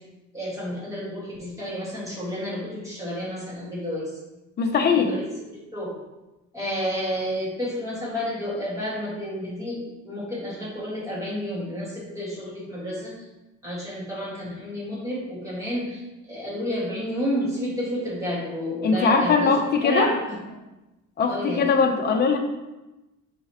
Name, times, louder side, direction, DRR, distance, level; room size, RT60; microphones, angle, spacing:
voice 1, 0.3-4.1 5.1-5.2 5.7-6.0 6.5-13.2 13.6-20.4 21.3-21.7, equal, 10° right, -7 dB, 2.0 m, -30 dB
voice 2, 4.6-5.1 18.8-20.1 21.2-22.4, left 5 dB, 30° left, 2 dB, 0.8 m, -21 dB
8.0 x 4.1 x 3.1 m, 1.0 s
cardioid pair, 170°, 31 cm